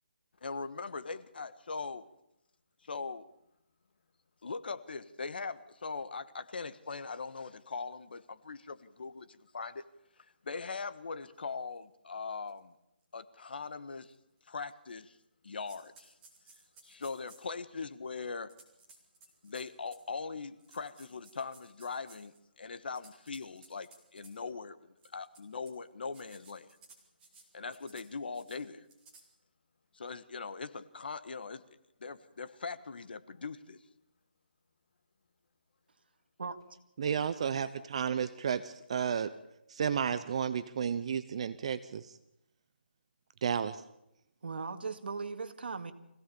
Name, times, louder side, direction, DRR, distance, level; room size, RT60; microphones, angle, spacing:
voice 1, 0.4-2.1 2.8-3.3 4.4-9.8 10.2-12.7 13.1-14.1 14.5-15.2 15.4-16.1 16.8-18.5 19.4-24.8 25.1-26.7 27.5-28.9 29.9-31.6 32.0-33.8, left 4 dB, 60° left, 12 dB, 1.5 m, -41 dB
sound 1, 11.7-11.8 12.5-12.6 13.0-13.1 14.0-14.1 14.7-15.2 15.6-17.5 18.5-20.1 20.6-22.4 22.8-24.3 25.0-25.7 26.0-27.4 27.7-28.1 28.3-28.6 28.9-29.2, right 3 dB, 10° right, 3.5 m, -59 dB
voice 2, 36.4-36.8 44.4-45.9, right 4 dB, 65° right, 8 dB, 2.1 m, -38 dB
voice 3, 37.0-39.3 39.7-42.1 43.4-43.8, right 7 dB, 35° right, 12 dB, 0.7 m, -32 dB
25.5 x 17.0 x 7.1 m, 0.85 s
hypercardioid pair, 170°, 6 cm